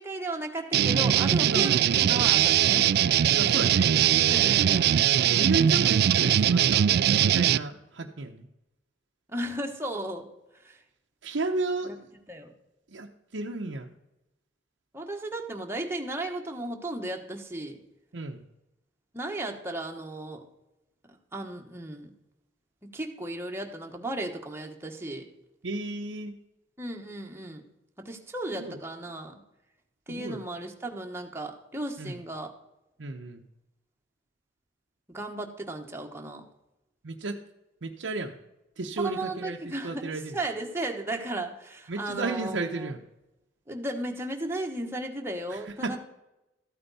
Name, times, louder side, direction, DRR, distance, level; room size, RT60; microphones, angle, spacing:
voice 1, 0.0-2.9 4.3-5.1 9.3-10.3 10.6-10.8 11.8-12.0 12.3-12.5 14.9-17.8 19.1-20.4 21.3-22.1 22.9-25.2 26.8-27.6 28.0-29.3 30.1-32.5 35.1-36.4 39.0-42.9 43.7-46.0, right 1 dB, 15° right, 1 dB, 1.3 m, -35 dB
sound 1, 0.7-7.6, right 10 dB, 60° right, 0.3 m, -21 dB
voice 2, 3.4-3.9 4.4-4.8 5.3-6.9 7.2-8.5 11.2-12.1 12.9-13.9 18.1-18.5 25.6-26.4 28.5-28.8 30.1-30.4 32.0-32.2 33.0-33.4 37.0-37.4 37.8-38.4 38.8-39.6 39.8-40.4 41.9-43.0 45.5-46.0, right 3 dB, 85° right, 2 dB, 0.8 m, -33 dB
14.0 x 8.8 x 4.1 m, 0.91 s
head